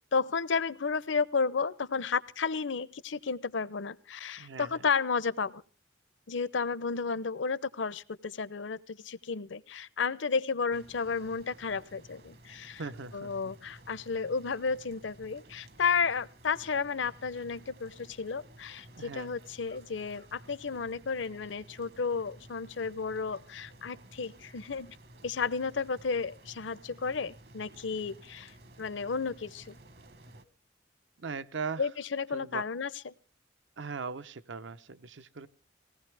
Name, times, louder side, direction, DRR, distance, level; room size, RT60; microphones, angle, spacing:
voice 1, 0.1-5.6 6.3-12.8 13.1-25.0 25.2-28.5 28.8-29.8 31.8-33.1, left 5 dB, 80° left, 18 dB, 0.7 m, -32 dB
voice 2, 4.4-4.8 12.8-13.5 19.0-19.3 31.2-31.9 32.3-32.7 33.8-35.5, right 5 dB, 80° right, 13 dB, 0.8 m, -39 dB
sound 1, 10.7-30.4, right 1 dB, 55° right, 1.2 m, -54 dB
20.0 x 17.5 x 3.4 m, 0.37 s
head